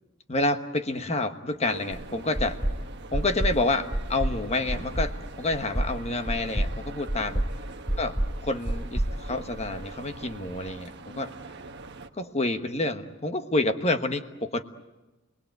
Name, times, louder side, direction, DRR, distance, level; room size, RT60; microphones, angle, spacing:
voice 1, 0.3-2.6 3.1-7.4 8.0-8.2 8.4-11.3 12.1-14.6, left 2 dB, 30° left, 8 dB, 1.3 m, -28 dB
sound 1, 1.6-12.1, right 3 dB, 55° right, 1.2 m, -43 dB
sound 2, 1.9-2.0 2.4-2.8 3.1-3.6 3.9-4.4 4.7-5.1 5.5-5.9 6.3-6.7 7.1-7.5 7.9-8.3 8.7-9.9, right 1 dB, 10° right, 1.4 m, -28 dB
29.0 x 20.5 x 9.2 m, 1.1 s
head